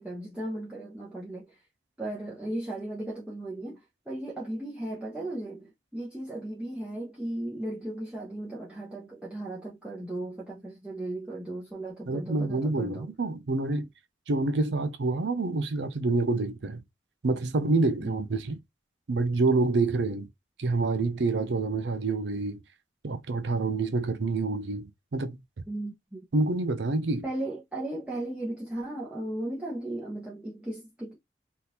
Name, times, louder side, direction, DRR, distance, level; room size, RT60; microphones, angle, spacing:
voice 1, 0.0-1.6 2.0-13.1 18.0-18.2 25.7-26.3 27.2-31.1, right 1 dB, 5° right, 0.8 m, -36 dB
voice 2, 12.1-13.9 14.3-16.8 17.2-18.6 19.1-20.3 20.6-22.6 23.0-25.4 26.3-27.2, right 3 dB, 85° right, 0.6 m, -27 dB
3.6 x 2.5 x 2.8 m
head